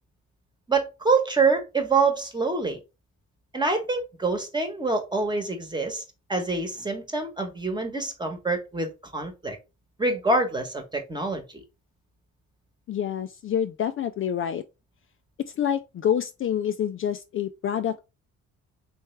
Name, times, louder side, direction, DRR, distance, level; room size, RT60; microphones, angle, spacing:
voice 1, 0.7-2.8 3.5-6.0 6.3-9.6 10.0-11.4, right 3 dB, 15° right, 1.1 m, -26 dB
voice 2, 12.9-14.6 15.5-18.0, left 9 dB, 45° left, 0.4 m, -27 dB
3.4 x 3.2 x 3.2 m
cardioid pair, 90°, 30 cm